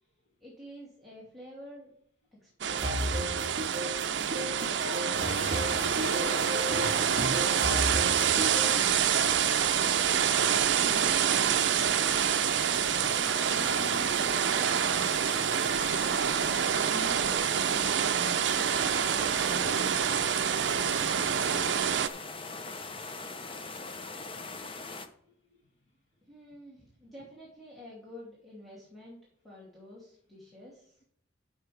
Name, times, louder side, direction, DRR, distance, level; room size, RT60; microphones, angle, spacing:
voice 1, 0.4-1.9 2.4-3.3 3.9-7.0 26.3-29.2 29.4-31.0, left 1 dB, ahead, -8 dB, 2.6 m, -50 dB
sound 1, 2.6-22.1, right 8 dB, 70° right, 0.5 m, -27 dB
sound 2, 2.7-8.8, equal, 50° right, 2.4 m, -34 dB
sound 3, 5.1-25.1, left 3 dB, 30° left, 0.8 m, -41 dB
voice 2, 9.6-11.7 12.7-15.0 15.7-19.8 20.7-21.0, left 1 dB, 70° left, 1 dB, 1.4 m, -46 dB
12.0 x 6.9 x 3.4 m, 0.65 s
head